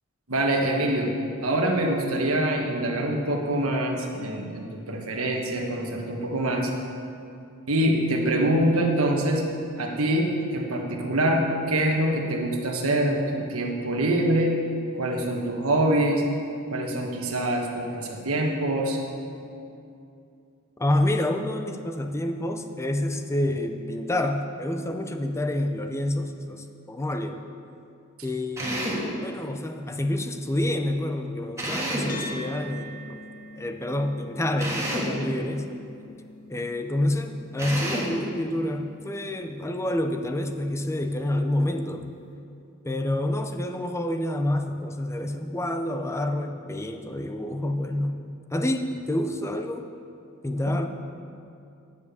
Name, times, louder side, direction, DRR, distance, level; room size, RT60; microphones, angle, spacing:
voice 1, 0.3-1.1 1.4-6.7 7.7-9.4 9.8-14.6 14.9-16.2 16.7-19.0 50.6-50.7, right 1 dB, 75° right, 1 dB, 1.4 m, -25 dB
voice 2, 20.8-27.4 28.2-33.2 33.6-35.7 36.5-42.1 42.8-48.2 48.5-49.8 50.4-50.9, left 1 dB, 15° left, 6 dB, 0.6 m, -28 dB
Drill, 28.6-29.1 31.6-32.2 34.6-35.2 37.6-38.2, right 1 dB, 15° right, 1.8 m, -29 dB
sound 1, 32.1-40.8, left 1 dB, 40° left, 1.3 m, -45 dB
9.8 x 7.2 x 6.8 m, 2.6 s
head